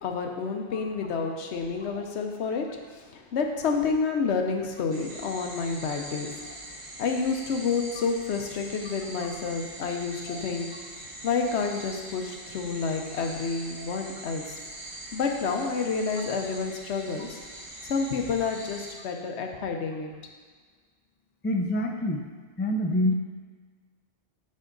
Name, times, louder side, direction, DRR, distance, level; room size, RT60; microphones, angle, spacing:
voice 1, 0.0-6.3 7.0-10.7 11.2-14.6 15.1-17.4 17.8-20.1, left 5 dB, 85° left, 3 dB, 1.0 m, -29 dB
sound 1, 4.9-18.9, right 1 dB, 30° right, 1.0 m, -43 dB
voice 2, 21.4-22.2 22.6-23.1, left 1 dB, 15° left, 2 dB, 0.4 m, -27 dB
7.6 x 4.7 x 3.8 m, 1.5 s
omnidirectional pair, 1.1 m